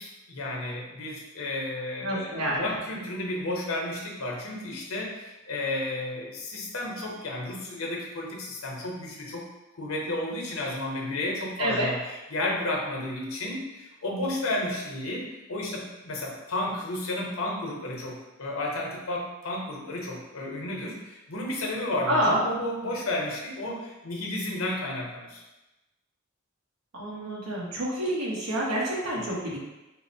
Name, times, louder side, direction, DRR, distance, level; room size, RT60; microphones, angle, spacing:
voice 1, 0.0-9.5 9.7-25.4, left 1 dB, 70° left, -2 dB, 0.8 m, -32 dB
voice 2, 2.0-2.6 11.6-11.9 22.1-22.4 26.9-29.6, right 1 dB, 80° right, -4 dB, 0.9 m, -28 dB
4.6 x 2.0 x 2.6 m, 1.0 s
head